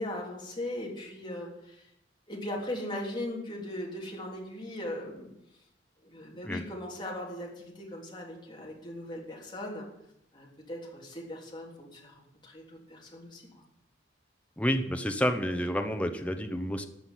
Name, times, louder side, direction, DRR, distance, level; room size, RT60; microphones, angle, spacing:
voice 1, 0.0-1.9 2.3-5.3 6.0-9.9 10.3-13.5, left 1 dB, 25° left, -2 dB, 3.5 m, -39 dB
voice 2, 14.6-16.9, equal, 5° left, 6 dB, 0.9 m, -29 dB
14.5 x 5.8 x 9.2 m, 0.79 s
head